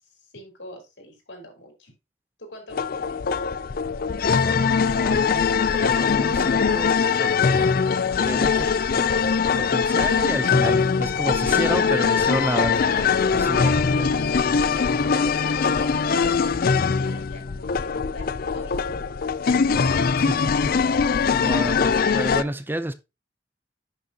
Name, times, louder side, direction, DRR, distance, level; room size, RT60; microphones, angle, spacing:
voice 1, 0.1-1.9 2.4-3.2 14.2-14.7 15.4-19.4, left 1 dB, 90° left, 4.2 m, -44 dB
sound 1, 2.7-22.4, left 5 dB, 55° left, 0.5 m, -22 dB
voice 2, 5.0-5.4 5.7-7.8 8.2-8.7 8.9-14.1 20.2-22.9, right 1 dB, 10° right, 0.6 m, -31 dB
10.5 x 6.4 x 2.9 m
head